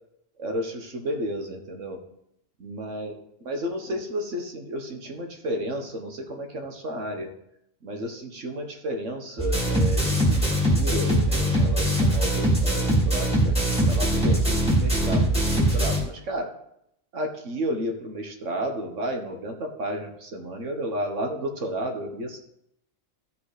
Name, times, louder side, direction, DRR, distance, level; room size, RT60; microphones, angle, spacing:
voice 1, 0.4-2.0 2.6-3.2 3.4-7.3 7.8-13.5 13.8-16.5 17.1-22.4, equal, 70° right, 4 dB, 1.7 m, -32 dB
sound 1, 9.4-16.0, right 1 dB, 5° right, 2.4 m, -22 dB
15.0 x 5.3 x 5.0 m, 0.78 s
omnidirectional pair, 1.3 m